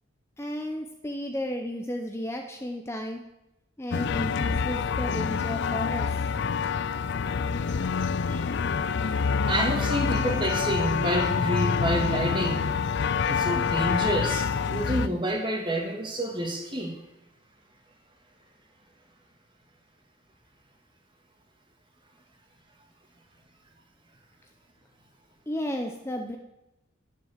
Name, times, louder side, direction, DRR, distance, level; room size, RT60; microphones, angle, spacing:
voice 1, 0.4-3.2 3.8-6.2 25.5-26.4, equal, 10° left, 3 dB, 0.8 m, -33 dB
sound 1, 3.9-15.1, left 5 dB, 55° left, 0.4 m, -27 dB
voice 2, 9.1-12.8 13.2-16.9, right 1 dB, 25° right, 2 dB, 2.1 m, -29 dB
11.0 x 10.0 x 7.4 m, 0.94 s
head